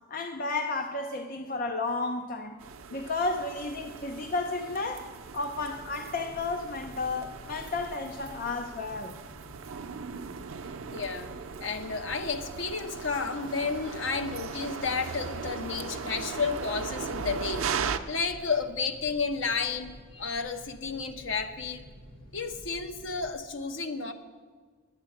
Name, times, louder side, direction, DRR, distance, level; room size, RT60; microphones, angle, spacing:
voice 1, 0.1-2.5 2.9-5.1 5.3-9.2, left 3 dB, 45° left, 0.5 m, -32 dB
sound 1, 2.6-18.0, right 5 dB, 85° right, 0.6 m, -38 dB
sound 2, 5.2-23.3, equal, 80° left, 4.4 m, -52 dB
voice 2, 10.9-11.3 11.6-17.7 18.1-21.9 22.3-24.1, left 5 dB, 65° left, 0.9 m, -32 dB
9.9 x 8.8 x 7.7 m
head